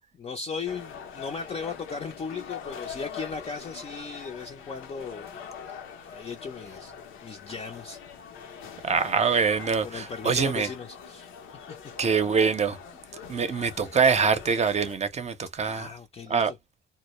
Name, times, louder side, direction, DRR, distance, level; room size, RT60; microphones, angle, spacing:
voice 1, 0.0-5.3 6.1-6.9 7.2-8.3 9.8-11.3 11.7-11.8 15.6-16.6, left 5 dB, 30° left, 0.5 m, -37 dB
sound 1, 0.7-15.0, left 7 dB, 90° left, 0.6 m, -43 dB
voice 2, 8.8-10.7 12.0-12.8 13.3-15.9 16.3-16.5, right 5 dB, 35° right, 0.6 m, -24 dB
2.1 x 2.0 x 2.9 m
cardioid pair, 90°, 20 cm